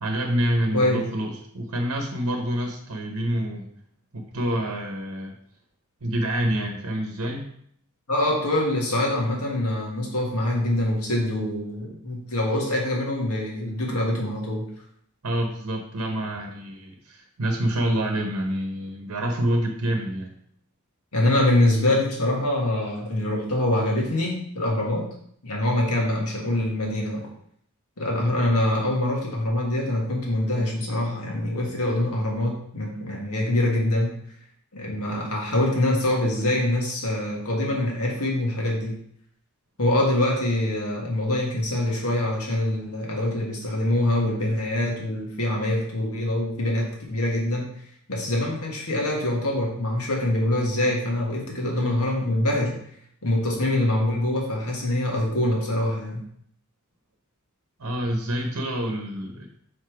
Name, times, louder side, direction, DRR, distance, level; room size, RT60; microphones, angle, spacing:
voice 1, 0.0-3.6 4.1-5.3 6.0-7.5 15.2-20.3 57.8-59.5, right 1 dB, 70° right, 2 dB, 0.8 m, -27 dB
voice 2, 8.1-14.6 21.1-25.1 25.4-27.2 28.0-34.1 34.7-39.0 39.8-47.6 48.1-52.8 53.2-56.2, left 1 dB, 80° left, -2 dB, 1.7 m, -24 dB
4.8 x 4.2 x 4.8 m, 0.67 s
head